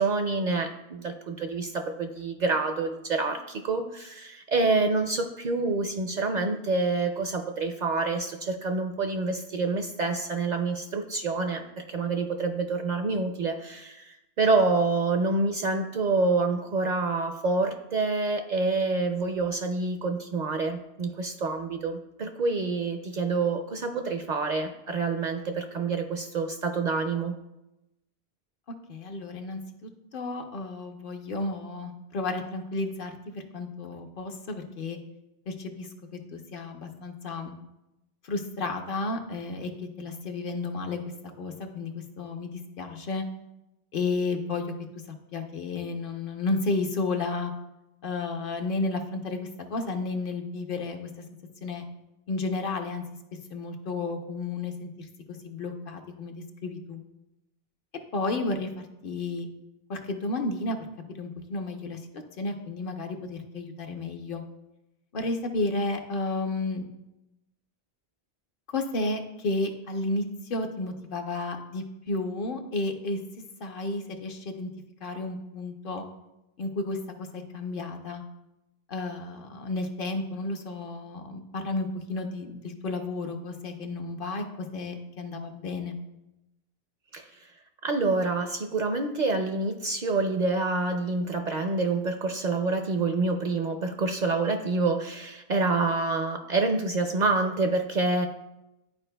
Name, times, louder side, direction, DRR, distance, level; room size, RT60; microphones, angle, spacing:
voice 1, 0.0-27.3 87.1-87.5 87.8-98.3, right 3 dB, 55° right, 5 dB, 0.5 m, -27 dB
voice 2, 28.9-35.0 35.5-35.9 36.3-37.5 38.2-39.7 40.0-41.0 41.4-43.2 43.9-44.7 45.3-47.5 48.0-51.1 51.6-51.9 52.3-53.0 53.5-55.1 55.4-57.0 58.1-59.5 59.9-60.8 61.2-62.0 62.4-64.4 65.1-66.9 68.7-70.2 70.5-73.2 73.6-74.7 75.0-76.0 76.6-77.0 77.3-78.2 78.9-85.9, left 3 dB, 60° left, 4 dB, 0.8 m, -32 dB
11.5 x 4.5 x 2.2 m, 0.93 s
omnidirectional pair, 1.1 m